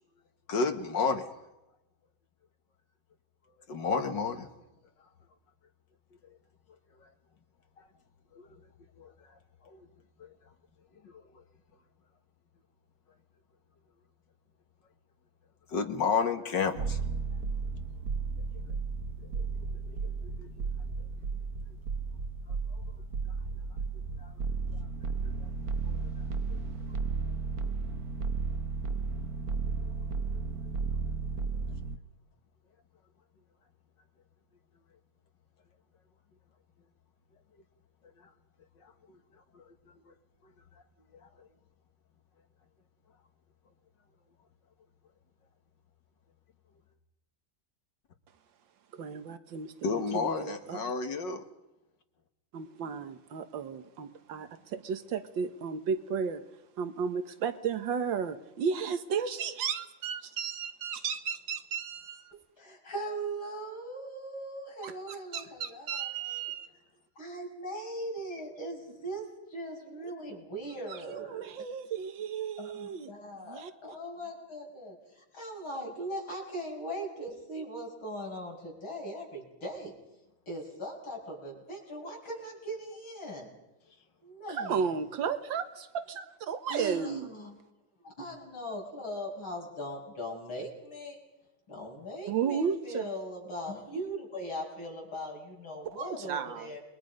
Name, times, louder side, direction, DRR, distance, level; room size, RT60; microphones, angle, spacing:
voice 1, 0.5-1.3 3.7-4.5 7.0-7.1 7.8-7.9 8.3-8.5 9.0-9.1 9.6-9.9 10.2-10.3 11.0-11.2 15.7-17.0 19.9-20.0 20.4-20.5 22.7-22.8 24.2-24.3 25.4-25.5 25.9-26.0 38.8-39.2 39.5-39.7 40.1-40.2 41.4-41.5 49.8-51.4, left 5 dB, 60° left, 2.2 m, -32 dB
sound 1, 16.8-32.0, right 5 dB, 55° right, 1.3 m, -34 dB
voice 2, 48.9-50.8 52.5-56.4 56.8-62.3 64.8-66.7 70.0-70.1 70.9-73.1 73.4-73.7 84.5-87.3 92.3-93.0 95.9-96.7, right 6 dB, 70° right, 2.0 m, -34 dB
voice 3, 62.3-66.5 67.2-71.5 72.6-79.9 80.5-83.5 84.2-85.0 86.7-87.6 88.0-91.2 91.7-96.8, right 1 dB, 85° left, 7.4 m, -40 dB
29.5 x 22.0 x 5.3 m
omnidirectional pair, 2.2 m